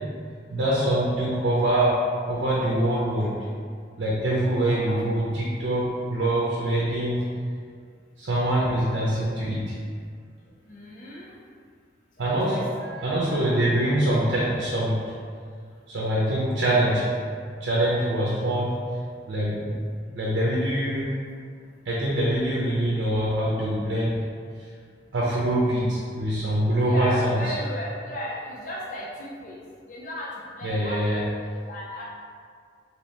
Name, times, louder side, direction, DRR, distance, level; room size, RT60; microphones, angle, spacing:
voice 1, 0.5-2.0 2.3-3.4 4.0-7.2 8.2-9.7 12.2-15.0 15.9-17.1 17.6-18.8 19.3-19.8 20.1-21.1 21.8-24.2 24.6-24.7 25.1-27.6 30.6-31.2, right 1 dB, 85° right, -5 dB, 0.6 m, -24 dB
voice 2, 4.6-5.0 10.7-11.3 12.2-12.6 26.8-29.6 29.9-31.3 31.7-32.0, left 1 dB, 45° left, -4 dB, 0.4 m, -35 dB
2.9 x 2.9 x 3.1 m, 2.1 s
head